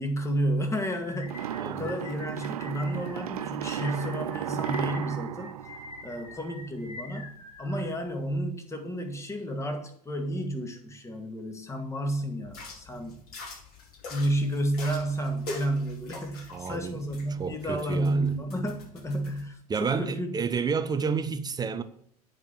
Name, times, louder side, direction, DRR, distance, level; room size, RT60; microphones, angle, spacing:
voice 1, 0.0-5.6 6.0-13.2 14.1-20.4, right 1 dB, 15° left, 2.0 m, -31 dB
sound 1, 1.0-8.4, left 3 dB, 75° left, 2.7 m, -46 dB
sound 2, 1.3-6.6, right 11 dB, 75° right, 0.4 m, -35 dB
voice 2, 1.6-2.0 16.5-17.0 17.3-18.3 19.7-21.8, right 5 dB, 20° right, 0.8 m, -30 dB
sound 3, 12.4-19.4, left 2 dB, 50° left, 4.8 m, -43 dB
9.2 x 4.9 x 7.5 m
figure-of-eight pair, 75°, 19 cm